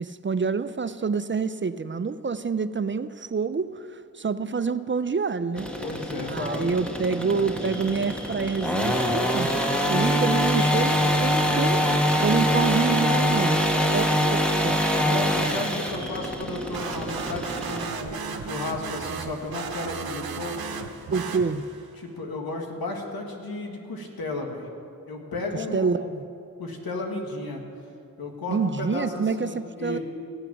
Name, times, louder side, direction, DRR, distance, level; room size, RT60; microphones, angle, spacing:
voice 1, 0.0-5.7 6.3-9.5 9.9-11.8 12.2-13.6 13.9-14.8 21.1-21.6 25.7-26.3 28.5-30.0, right 5 dB, 35° right, 13 dB, 0.5 m, -27 dB
sound 1, 5.6-17.9, equal, 5° left, 1.4 m, -24 dB
voice 2, 5.8-6.7 7.1-7.7 15.0-20.7 22.0-24.7 25.0-26.1 26.6-27.7 28.2-30.0, left 2 dB, 90° left, 2 dB, 1.6 m, -34 dB
sound 2, 7.6-16.3, left 1 dB, 40° left, 3.2 m, -43 dB
sound 3, 16.7-21.9, right 6 dB, 85° right, 0.8 m, -35 dB
15.5 x 8.1 x 5.9 m, 2.6 s
cardioid pair, 50°, 35 cm